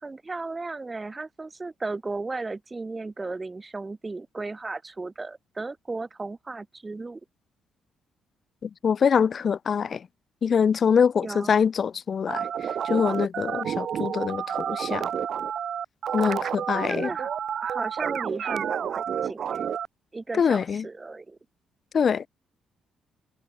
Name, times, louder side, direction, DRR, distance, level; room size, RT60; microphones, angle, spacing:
voice 1, 0.0-7.2 11.2-11.6 16.7-17.3 17.6-19.7 20.1-21.4, right 3 dB, 25° right, 2.7 m, -35 dB
voice 2, 8.6-10.1 10.4-12.5 12.8-15.1 16.1-17.1 20.3-20.9 21.9-22.3, left 7 dB, 50° left, 0.4 m, -24 dB
sound 1, 12.3-19.9, right 8 dB, 60° right, 0.7 m, -30 dB
cardioid pair, 90°, 0 cm